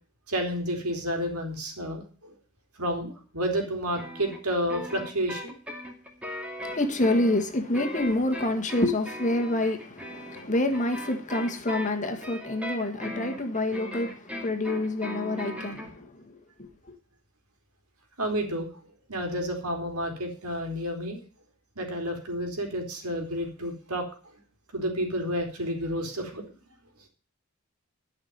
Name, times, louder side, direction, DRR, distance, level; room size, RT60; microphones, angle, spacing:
voice 1, 0.3-2.4 2.8-5.5 10.3-10.5 18.2-18.7 19.1-21.2 21.8-24.0 24.7-26.5, equal, 80° right, 3.6 m, -30 dB
sound 1, 4.0-15.9, left 1 dB, 5° right, 2.2 m, -38 dB
voice 2, 6.6-16.7, left 1 dB, 35° left, 1.7 m, -27 dB
12.5 x 6.0 x 9.4 m
head